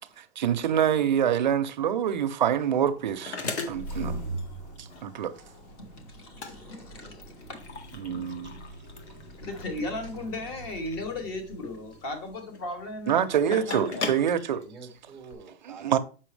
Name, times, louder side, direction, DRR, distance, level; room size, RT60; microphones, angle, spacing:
voice 1, 0.2-3.4 3.7-4.2 4.8-5.4 8.0-8.6 13.1-14.6 15.7-16.0, right 9 dB, 45° right, 0.6 m, -26 dB
sound 1, 2.0-15.3, left 4 dB, 80° left, 1.6 m, -40 dB
voice 2, 3.4-7.9 9.3-13.2 13.5-14.1, left 2 dB, 20° left, 1.0 m, -38 dB
sound 2, 3.6-14.0, right 2 dB, 40° left, 1.6 m, -42 dB
voice 3, 5.8-7.3 14.5-16.0, right 4 dB, ahead, 0.7 m, -49 dB
7.0 x 5.7 x 3.2 m
hypercardioid pair, 170°, 33 cm